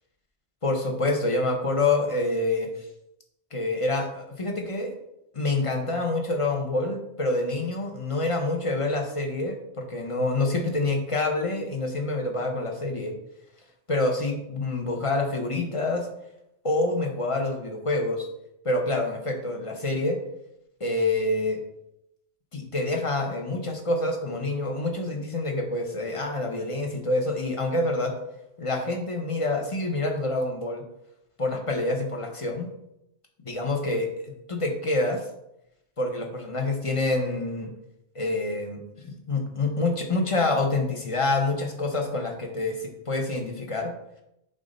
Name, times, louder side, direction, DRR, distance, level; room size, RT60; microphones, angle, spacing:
voice 1, 0.6-2.7 3.5-4.9 5.3-13.1 13.9-16.1 16.6-18.3 18.6-20.2 20.8-21.6 22.5-28.1 28.6-30.8 31.4-32.7 33.4-35.2 36.0-37.7 38.1-43.9, left 2 dB, 30° left, 2 dB, 1.0 m, -27 dB
7.3 x 3.9 x 5.3 m, 0.84 s
omnidirectional pair, 1.3 m